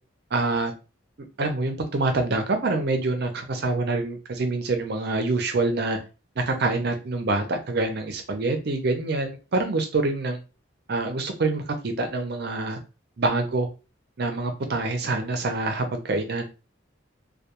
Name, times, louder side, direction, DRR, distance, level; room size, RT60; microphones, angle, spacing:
voice 1, 0.3-0.7 1.4-6.0 6.4-10.4 10.9-12.8 13.2-13.7 14.2-16.6, right 3 dB, 55° right, 6 dB, 0.5 m, -26 dB
2.2 x 2.2 x 2.9 m, 0.31 s
head